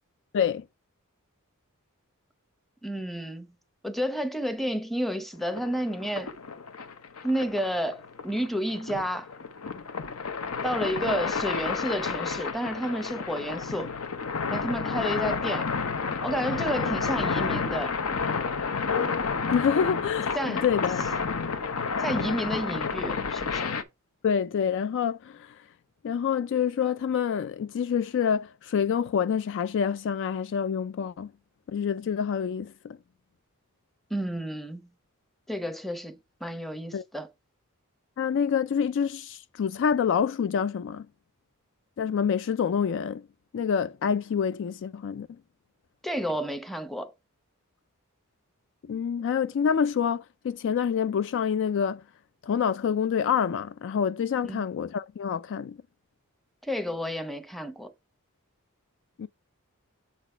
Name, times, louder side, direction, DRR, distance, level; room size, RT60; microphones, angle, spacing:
voice 1, 0.3-0.7 19.5-21.0 24.2-25.6 26.0-31.3 31.7-33.0 36.9-37.0 38.2-41.1 42.0-43.3 43.5-45.3 48.8-52.0 52.4-55.8 59.2-59.3, left 7 dB, 55° left, 0.3 m, -27 dB
voice 2, 2.8-3.5 3.8-6.3 7.2-9.3 10.6-13.9 14.5-15.7 16.2-17.9 20.3-20.6 22.0-23.7 34.1-34.9 35.5-37.3 46.0-47.1 54.4-54.7 56.6-57.9, equal, ahead, 0.7 m, -31 dB
sound 1, 5.5-23.8, left 5 dB, 70° left, 0.8 m, -30 dB
7.3 x 4.0 x 4.3 m
head